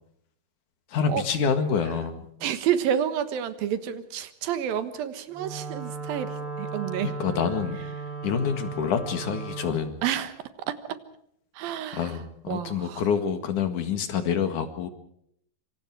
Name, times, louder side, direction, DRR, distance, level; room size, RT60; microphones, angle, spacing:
voice 1, 0.9-2.2 7.0-7.8 8.2-10.0 11.9-14.9, left 6 dB, 60° left, 8 dB, 3.2 m, -27 dB
voice 2, 2.4-7.2 10.0-10.4 10.7-11.0 11.6-13.1, right 9 dB, 75° right, 12 dB, 3.1 m, -29 dB
Wind instrument woodwind instrument, 5.3-9.8, right 4 dB, 35° right, 7.7 m, -36 dB
26.0 x 25.5 x 4.7 m, 0.70 s
omnidirectional pair, 4.2 m